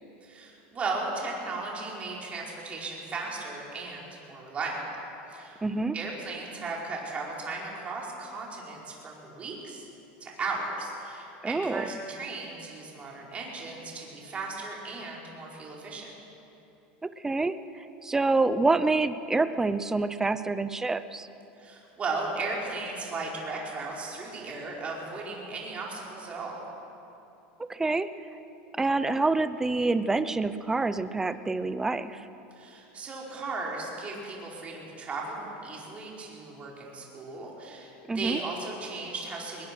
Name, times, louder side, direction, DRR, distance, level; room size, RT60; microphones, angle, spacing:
voice 1, 0.2-5.0 5.3-5.6 5.9-9.9 10.2-16.1 21.6-26.6 32.5-39.7, right 3 dB, 25° right, -3 dB, 4.7 m, -36 dB
voice 2, 5.6-5.9 11.4-11.9 17.0-21.3 27.6-28.1 28.7-32.3 38.1-38.4, right 3 dB, 10° right, 13 dB, 0.7 m, -27 dB
21.0 x 20.5 x 6.2 m, 2.9 s
supercardioid pair, 135°, 5 cm